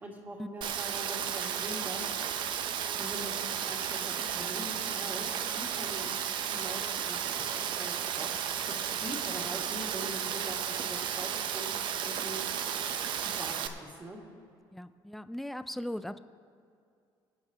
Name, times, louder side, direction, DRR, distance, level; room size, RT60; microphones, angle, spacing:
voice 1, 0.0-2.1 3.0-6.1 6.5-12.6 13.2-14.2, right 1 dB, 20° right, -1 dB, 2.0 m, -43 dB
Rain, 0.6-13.7, right 8 dB, 55° right, 0.7 m, -33 dB
voice 2, 14.7-16.2, left 1 dB, ahead, 13 dB, 0.3 m, -38 dB
23.5 x 9.1 x 2.9 m, 2.4 s
cardioid pair, 130°, 9 cm